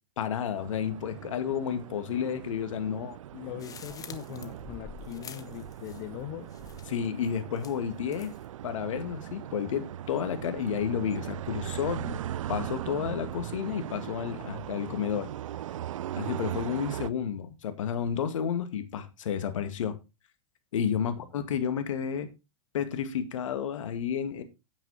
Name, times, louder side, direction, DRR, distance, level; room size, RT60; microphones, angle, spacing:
voice 1, 0.2-3.2 6.9-8.3 8.6-12.2 12.5-15.3 16.2-20.0 20.7-22.3 22.7-24.4, left 8 dB, 75° left, 2.1 m, -31 dB
sound 1, 0.5-17.1, right 11 dB, 80° right, 0.5 m, -39 dB
voice 2, 3.3-6.6 21.0-21.2, left 15 dB, 45° left, 1.0 m, -41 dB
sound 2, 3.6-6.2 6.5-7.1 7.6-8.5, left 7 dB, 20° left, 1.1 m, -47 dB
9.3 x 8.8 x 4.3 m
hypercardioid pair, 115°, 16 cm